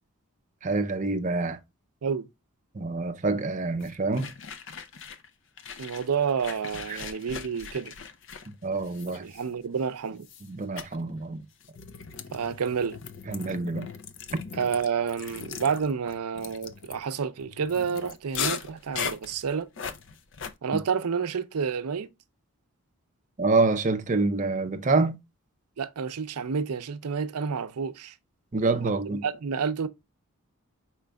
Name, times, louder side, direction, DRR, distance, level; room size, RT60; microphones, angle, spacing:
voice 1, 0.6-1.6 2.7-4.3 6.9-7.0 8.5-9.3 10.4-11.5 13.3-13.9 14.3-14.4 20.7-20.8 23.4-25.2 28.5-29.2, right 3 dB, 35° right, 0.5 m, -27 dB
sound 1, 3.8-5.3 5.6-9.8 10.2-10.5 10.8-11.0 11.6-20.5, left 7 dB, 55° left, 0.5 m, -39 dB
voice 2, 5.8-7.9 9.2-10.3 12.3-13.0 14.6-19.7 20.6-22.1 25.8-28.1 29.1-29.9, right 6 dB, 85° right, 0.5 m, -29 dB
5.0 x 4.4 x 2.2 m
head